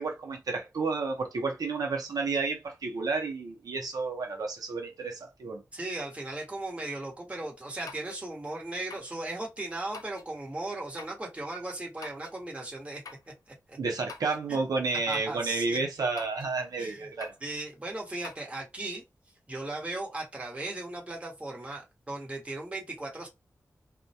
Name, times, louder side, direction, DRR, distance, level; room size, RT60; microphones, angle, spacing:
voice 1, 0.0-5.6 13.8-17.3, right 4 dB, 85° right, 0.6 m, -31 dB
voice 2, 5.7-13.0 13.5-13.8 14.5-14.6 15.1-15.8 16.8-17.1 17.4-19.0 19.5-23.3, right 2 dB, 20° right, 1.0 m, -37 dB
sound 1, 7.9-8.2 8.9-9.2 9.9-10.3 11.0-11.2 12.0-12.4 13.1-13.3 14.1-14.5 15.1-15.4 16.2-16.5 17.2-17.5 18.2-18.4, left 4 dB, 80° left, 0.4 m, -46 dB
2.2 x 2.1 x 2.7 m
wide cardioid pair, 90°, 6 cm